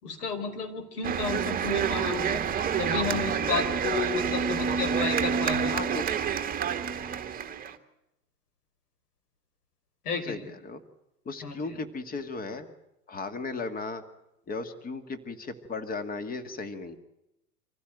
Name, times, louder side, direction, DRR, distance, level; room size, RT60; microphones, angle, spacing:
voice 1, 0.0-2.4 2.8-5.7 10.0-10.5 11.4-11.8, left 4 dB, 70° left, 6 dB, 5.1 m, -32 dB
sound 1, 1.0-7.7, right 7 dB, 20° right, 1.9 m, -28 dB
voice 2, 5.7-6.1 10.1-10.8 11.3-12.7 13.1-14.0 14.5-17.0, left 3 dB, 20° left, 9 dB, 2.0 m, -36 dB
26.0 x 15.5 x 9.1 m, 0.88 s
hypercardioid pair, 105°, 48 cm